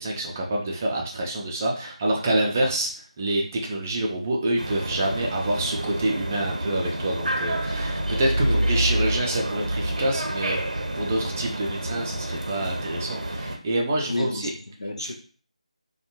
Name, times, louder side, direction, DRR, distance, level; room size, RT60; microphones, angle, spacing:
voice 1, 0.0-2.9 3.2-14.5 15.0-15.1, right 1 dB, 20° right, -1 dB, 0.4 m, -27 dB
sound 1, 4.6-13.6, right 1 dB, 80° right, 0.5 m, -28 dB
voice 2, 14.1-15.1, left 2 dB, 70° left, 3 dB, 0.5 m, -31 dB
2.5 x 2.2 x 2.9 m, 0.43 s
figure-of-eight pair, 165°, 4 cm